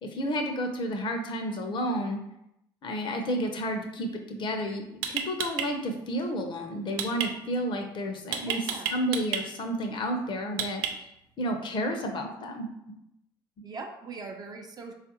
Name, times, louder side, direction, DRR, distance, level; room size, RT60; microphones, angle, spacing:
voice 1, 0.0-2.2 2.8-10.8 11.4-12.7, equal, 45° left, 4 dB, 0.6 m, -31 dB
sound 1, 4.4-4.5 5.0-5.7 7.0-7.3 8.3-9.4 10.6-11.2, right 7 dB, 85° right, 0.4 m, -30 dB
voice 2, 8.4-9.0 13.6-14.9, right 4 dB, 35° right, 3 dB, 0.6 m, -41 dB
3.5 x 2.4 x 2.9 m, 0.83 s
supercardioid pair, 70°, 11 cm